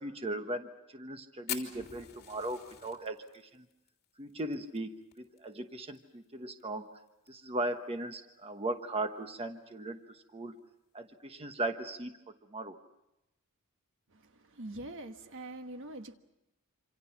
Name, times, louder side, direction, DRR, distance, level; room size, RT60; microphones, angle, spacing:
voice 1, 0.0-3.6 4.2-6.9 7.3-10.5 10.9-12.1 12.5-12.8, right 1 dB, 25° right, 1.1 m, -38 dB
Fire, 1.5-6.0 6.2-6.3 6.6-6.7 7.1-7.5 8.0-8.1 9.2-9.3, left 10 dB, 45° left, 3.2 m, -43 dB
voice 2, 14.1-16.2, right 1 dB, 60° right, 1.4 m, -44 dB
27.0 x 26.5 x 5.9 m
head